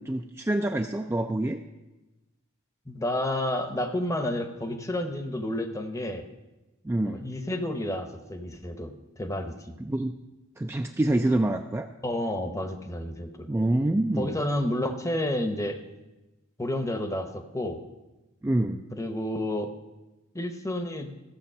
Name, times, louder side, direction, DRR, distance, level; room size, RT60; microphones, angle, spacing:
voice 1, 0.0-1.6 6.8-7.2 9.8-10.1 10.6-11.9 13.5-14.3 18.4-18.8, right 1 dB, 10° right, 4 dB, 0.3 m, -26 dB
voice 2, 2.9-6.2 7.0-9.7 12.0-13.5 14.2-15.8 16.6-17.8 18.9-19.7 20.3-21.1, left 1 dB, 15° left, 8 dB, 0.8 m, -30 dB
14.5 x 6.9 x 5.5 m, 1.0 s
head